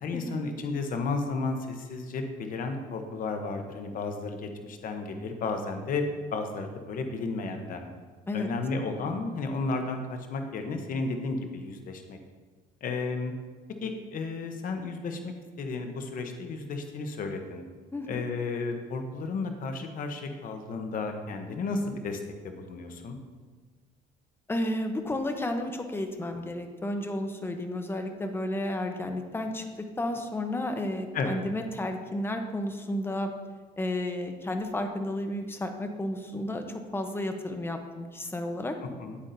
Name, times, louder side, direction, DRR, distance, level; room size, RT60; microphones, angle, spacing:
voice 1, 0.0-7.9 8.3-12.2 12.8-13.3 13.8-17.6 18.1-23.2 31.1-31.4 39.0-39.2, left 3 dB, 55° left, 6 dB, 0.9 m, -33 dB
voice 2, 17.9-18.2 24.5-29.6 30.0-33.3 33.8-36.6 36.9-38.8, left 1 dB, 15° left, 5 dB, 0.8 m, -32 dB
9.0 x 8.3 x 2.7 m, 1.4 s
cardioid pair, 110°, 17 cm